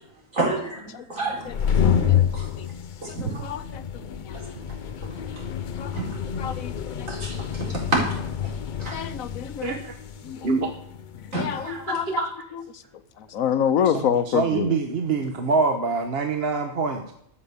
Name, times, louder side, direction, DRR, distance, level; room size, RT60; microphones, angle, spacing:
voice 1, 0.3-1.4 1.9-2.5 3.1-3.5 5.9-6.2 7.1-7.4 7.9-8.0 8.8-9.0 11.3-11.5, right 2 dB, 65° right, -3 dB, 4.7 m, -28 dB
sound 1, 1.3-11.8, left 9 dB, 55° left, 0.5 m, -28 dB
voice 2, 1.8-2.2 2.6-2.7 3.1-4.5 5.8-5.9 6.4-7.1 8.9-9.7 10.2-10.5 11.2-12.2 13.2-14.7, left 8 dB, 75° left, 13 dB, 1.2 m, -28 dB
voice 3, 9.6-10.0 10.4-10.7 11.5-12.4 13.8-17.1, right 4 dB, 50° right, 5 dB, 1.2 m, -26 dB
13.0 x 7.5 x 6.9 m, 0.70 s
omnidirectional pair, 1.5 m